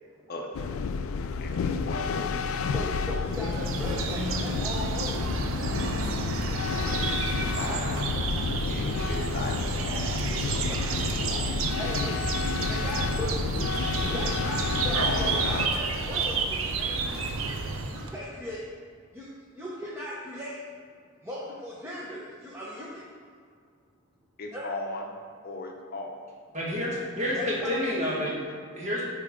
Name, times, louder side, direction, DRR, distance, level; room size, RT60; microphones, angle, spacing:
sound 1, 0.5-15.7, left 5 dB, 85° left, 0.3 m, -30 dB
voice 1, 1.4-2.7 3.4-3.5 7.0-7.2 7.5-11.0 11.3-11.5 13.8-14.5 14.8-15.7 24.4-25.1 25.4-26.2 28.1-28.6, left 2 dB, 45° left, 1 dB, 0.7 m, -38 dB
voice 2, 2.7-5.4 7.3-7.9 8.2-8.3 10.7-10.8 11.8-13.4 14.1-14.6 14.8-17.4 17.9-18.6 19.1-19.3 19.5-20.6 21.2-23.1 24.5-24.6 27.3-27.9, equal, 10° right, -7 dB, 0.8 m, -38 dB
sound 2, 3.3-18.2, right 4 dB, 80° right, 0.6 m, -31 dB
voice 3, 26.5-28.3 28.7-29.0, left 1 dB, 35° right, -5 dB, 1.6 m, -29 dB
8.6 x 4.5 x 3.6 m, 2.1 s
head